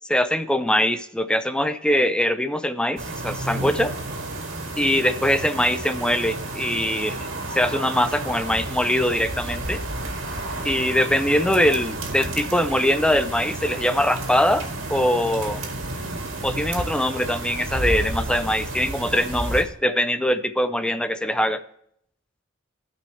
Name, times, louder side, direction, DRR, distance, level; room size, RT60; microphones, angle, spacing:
voice 1, 0.1-3.9 4.8-9.8 10.6-15.6 16.4-21.6, left 1 dB, 5° left, 11 dB, 0.5 m, -22 dB
sound 1, 3.0-19.6, right 2 dB, 80° right, 2.2 m, -31 dB
16.0 x 5.3 x 3.3 m, 0.69 s
head